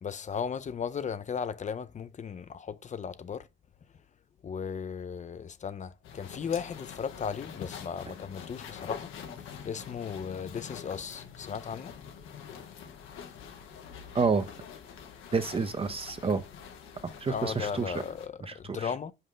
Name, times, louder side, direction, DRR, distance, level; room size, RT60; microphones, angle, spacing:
voice 1, 0.0-3.5 4.4-9.1 9.6-11.9 17.3-19.1, left 6 dB, 35° left, 0.5 m, -36 dB
sound 1, 6.0-18.3, left 7 dB, 90° left, 1.1 m, -45 dB
voice 2, 14.1-14.5 15.3-16.4 17.2-17.9 18.5-18.8, right 4 dB, 30° right, 0.6 m, -28 dB
5.5 x 4.9 x 3.8 m
cardioid pair, 90°, 20 cm